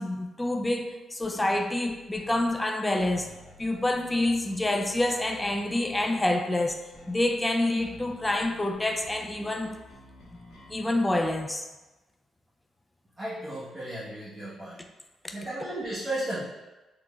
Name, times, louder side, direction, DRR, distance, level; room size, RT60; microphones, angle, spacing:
voice 1, 0.0-3.3 3.6-9.8 10.3-10.4 10.7-11.7 15.2-15.3, left 1 dB, 15° left, 4 dB, 0.3 m, -27 dB
sound 1, 1.2-10.8, left 1 dB, 85° left, 1.1 m, -50 dB
voice 2, 13.2-14.8 15.3-16.4, right 1 dB, 20° right, -11 dB, 1.0 m, -34 dB
3.6 x 3.0 x 2.3 m, 1.1 s
cardioid pair, 90°, 0 cm